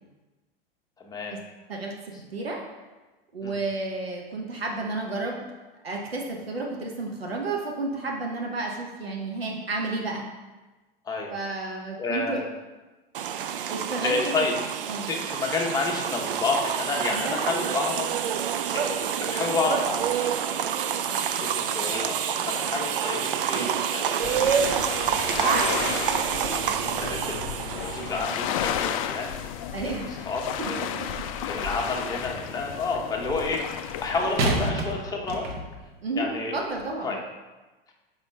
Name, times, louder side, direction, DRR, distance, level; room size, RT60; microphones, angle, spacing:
voice 1, 1.0-1.4 3.4-3.6 11.1-11.3 12.0-12.4 14.0-14.6 15.0-18.1 18.4-20.5 20.9-25.1 26.0-26.6 27.0-29.5 30.3-30.9 31.4-35.5 36.2-36.6 37.0-37.2, left 3 dB, 10° left, -1 dB, 0.9 m, -30 dB
voice 2, 2.3-2.6 3.3-5.4 5.8-10.2 11.3-12.4 13.7-14.3 14.9-15.1 17.1-17.7 29.7-30.3 30.6-30.7 36.0-37.2, right 3 dB, 80° right, -1 dB, 1.0 m, -31 dB
sound 1, 13.1-28.3, right 8 dB, 65° right, 0.4 m, -27 dB
sound 2, 24.2-34.7, left 9 dB, 35° left, 0.4 m, -33 dB
sound 3, 31.1-32.0 34.4-35.9 36.7-36.8, right 2 dB, 40° right, 1.0 m, -29 dB
4.8 x 4.2 x 5.3 m, 1.2 s
figure-of-eight pair, 90°, 30 cm